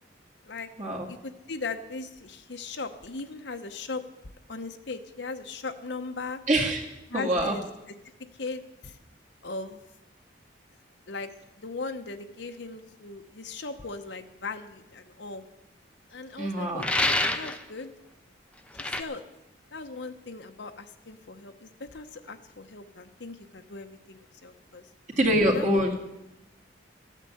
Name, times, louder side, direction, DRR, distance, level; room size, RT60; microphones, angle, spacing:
voice 1, 1.1-4.0 4.5-6.4 7.1-7.6 8.4-9.0 9.4-9.8 11.1-11.3 11.6-15.4 16.1-17.9 18.7-19.2 19.7-24.8 25.5-25.7, left 3 dB, 65° left, 6 dB, 0.9 m, -38 dB
voice 2, 6.5-6.8 7.1-7.6 16.4-16.9 25.2-25.9, right 1 dB, 40° right, -2 dB, 2.2 m, -24 dB
sound 1, 16.8-17.6 18.8-19.0, left 2 dB, 5° left, 0.7 m, -26 dB
13.5 x 9.2 x 7.8 m, 0.94 s
head